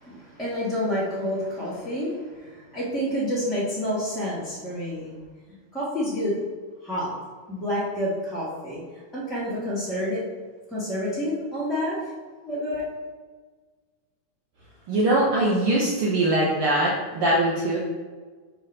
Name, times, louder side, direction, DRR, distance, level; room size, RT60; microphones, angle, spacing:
voice 1, 0.0-5.1 5.5-6.4 6.8-7.1 7.5-8.8 9.1-10.2 10.7-12.0 12.4-12.8, equal, ahead, -9 dB, 0.8 m, -28 dB
voice 2, 14.9-17.8, right 1 dB, 90° right, -4 dB, 1.2 m, -22 dB
6.3 x 3.4 x 5.4 m, 1.4 s
omnidirectional pair, 3.6 m